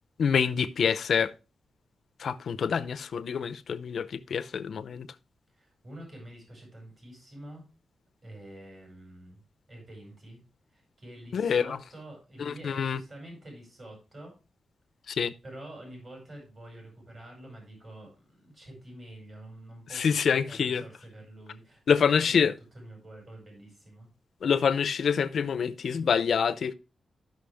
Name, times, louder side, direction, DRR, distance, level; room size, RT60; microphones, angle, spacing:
voice 1, 0.2-1.3 2.2-5.1 11.3-11.8 12.5-13.0 15.1-15.3 19.9-20.8 21.9-22.5 24.4-26.7, left 6 dB, 65° left, 0.6 m, -26 dB
voice 2, 5.5-7.6 8.2-9.4 9.7-10.4 10.7-14.3 15.4-24.1, right 1 dB, 40° right, 5.3 m, -47 dB
13.0 x 5.8 x 3.4 m
wide cardioid pair, 125°, 0 cm